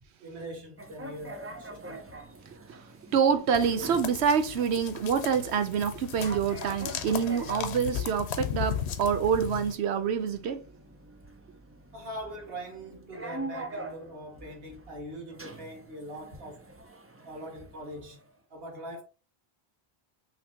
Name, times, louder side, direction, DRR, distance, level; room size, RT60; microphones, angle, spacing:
voice 1, 0.2-2.1 11.9-16.7 17.2-18.2 18.5-19.0, equal, 65° right, 1.6 m, -42 dB
sound 1, 0.8-18.3, right 2 dB, 20° right, 0.3 m, -45 dB
voice 2, 3.1-10.6, right 7 dB, 90° right, 1.0 m, -26 dB
sound 2, 3.5-9.7, left 8 dB, 90° left, 0.9 m, -36 dB
5.9 x 3.1 x 2.8 m
omnidirectional pair, 1.1 m